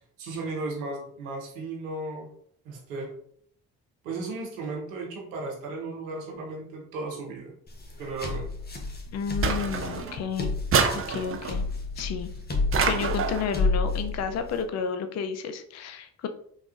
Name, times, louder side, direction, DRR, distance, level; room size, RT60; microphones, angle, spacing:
voice 1, 0.2-2.3 2.6-3.1 4.0-7.5 8.0-8.5, right 3 dB, 90° right, 0 dB, 0.8 m, -35 dB
sound 1, 7.7-14.6, left 3 dB, 25° left, 0.8 m, -30 dB
voice 2, 9.1-10.5 10.9-11.6 12.0-12.3 12.8-16.3, left 6 dB, 40° left, 8 dB, 0.4 m, -31 dB
sound 2, 9.4-10.2 10.7-11.6 12.7-13.5, right 5 dB, 35° right, 0.5 m, -26 dB
3.6 x 2.3 x 2.4 m, 0.63 s
hypercardioid pair, 45°, 41 cm